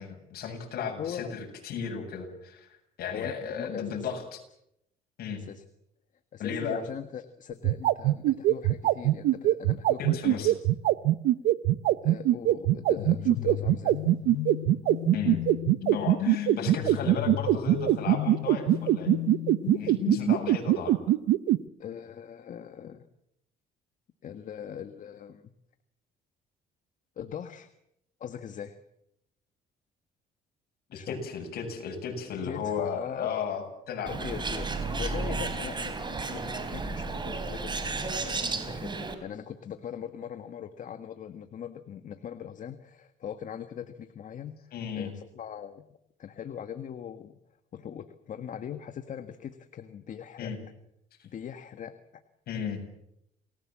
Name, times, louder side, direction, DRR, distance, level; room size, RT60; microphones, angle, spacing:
voice 1, 0.0-2.7 3.0-4.4 5.2-5.4 6.4-6.8 10.0-10.5 15.1-15.4 15.9-19.1 19.7-21.0 30.9-34.3 35.0-35.1 44.7-45.1 50.4-50.6 52.5-52.8, left 6 dB, 65° left, 4 dB, 7.5 m, -35 dB
voice 2, 1.0-1.3 3.1-4.1 5.3-5.6 6.3-10.6 12.0-14.0 21.8-23.0 24.2-25.5 27.2-27.7 28.2-28.8 30.9-31.2 32.3-33.5 34.1-38.9 39.2-45.8 46.2-47.4 47.7-50.5 51.2-52.2, left 9 dB, 50° left, 9 dB, 1.6 m, -40 dB
sound 1, 7.5-21.6, right 15 dB, 80° right, 0.9 m, -22 dB
sound 2, 13.0-20.6, left 16 dB, 85° left, 1.0 m, -35 dB
Bird, 34.1-39.1, right 3 dB, 25° right, 3.9 m, -33 dB
29.0 x 19.5 x 7.5 m, 0.79 s
cardioid pair, 110°, 17 cm